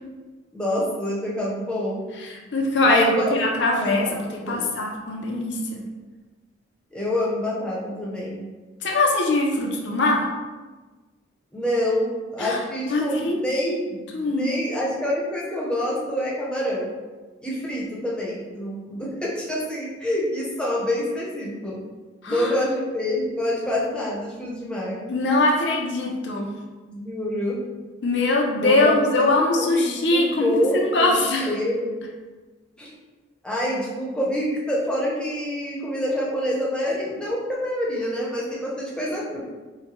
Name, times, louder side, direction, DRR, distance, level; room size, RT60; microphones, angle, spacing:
voice 1, 0.5-2.1 2.8-3.4 3.7-4.7 6.9-8.5 11.5-16.9 17.4-21.8 22.3-25.0 26.9-27.6 28.6-29.2 29.5-32.0 32.8-32.9 33.4-39.4, left 1 dB, 5° left, -6 dB, 0.7 m, -27 dB
voice 2, 2.2-5.8 8.8-10.3 12.4-12.6 12.9-13.8 14.1-14.5 22.2-22.5 25.1-26.5 28.0-31.5, left 2 dB, 60° left, 0 dB, 0.5 m, -22 dB
4.6 x 2.1 x 2.9 m, 1.3 s
head